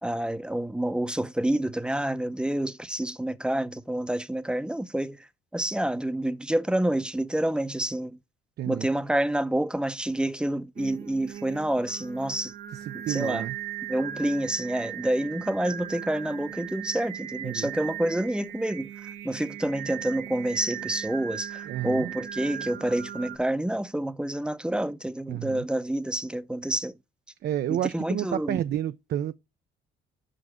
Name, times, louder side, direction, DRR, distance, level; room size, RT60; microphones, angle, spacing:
voice 1, 0.0-5.3 5.5-8.2 8.7-12.5 12.9-13.4 13.9-26.9 27.7-28.6, right 1 dB, 5° right, 0.6 m, -28 dB
voice 2, 8.6-8.9 12.7-13.6 17.4-17.7 21.6-22.1 25.3-25.7 27.4-29.3, right 12 dB, 55° right, 0.4 m, -30 dB
Singing, 10.8-23.4, right 11 dB, 90° right, 1.0 m, -38 dB
5.6 x 5.0 x 6.0 m
cardioid pair, 90°, 20 cm